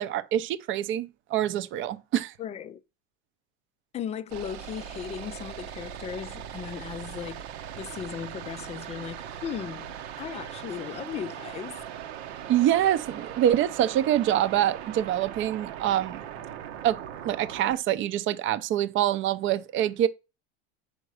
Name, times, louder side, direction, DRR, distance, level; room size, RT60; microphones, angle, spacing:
voice 1, 0.0-2.3 12.5-16.2 16.8-20.1, right 11 dB, 40° right, 0.6 m, -25 dB
voice 2, 2.4-2.8 3.9-7.4 7.8-11.8, left 8 dB, 20° left, 0.3 m, -37 dB
sound 1, 4.3-17.8, right 9 dB, 80° right, 1.0 m, -40 dB
5.2 x 5.0 x 6.2 m
supercardioid pair, 130°, 32 cm